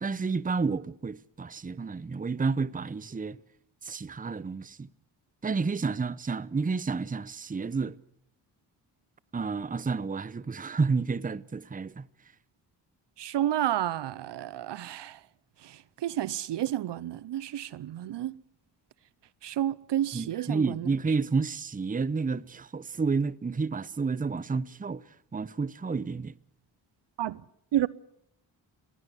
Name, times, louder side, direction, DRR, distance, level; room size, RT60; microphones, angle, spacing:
voice 1, 0.0-3.4 3.8-4.9 5.4-8.0 9.3-12.1 20.1-25.1 25.3-26.3, right 4 dB, 20° right, 0.7 m, -30 dB
voice 2, 13.2-15.2 15.6-18.4 19.4-20.9 27.2-27.4 27.7-27.9, right 12 dB, 65° right, 0.8 m, -30 dB
22.0 x 17.0 x 8.2 m
supercardioid pair, 50°, 46 cm